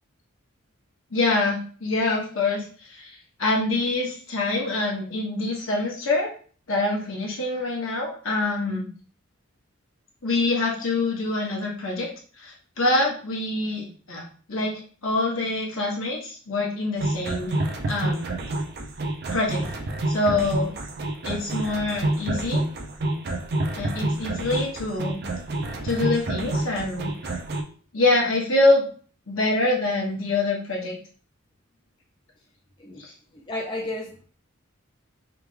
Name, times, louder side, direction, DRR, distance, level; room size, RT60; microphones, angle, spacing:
voice 1, 1.1-6.3 6.7-8.9 10.2-12.1 12.4-14.2 14.5-14.7 15.0-17.6 17.9-18.3 19.3-19.6 20.1-20.7 21.2-22.6 23.7-25.2 25.8-27.3 27.9-28.9 29.3-31.0 33.0-33.1, left 2 dB, 70° left, -2 dB, 1.1 m, -25 dB
sound 1, 17.0-27.6, right 2 dB, 50° right, 0.5 m, -28 dB
voice 2, 33.3-34.2, left 2 dB, 20° left, -1 dB, 0.4 m, -33 dB
3.5 x 2.2 x 3.1 m, 0.42 s
head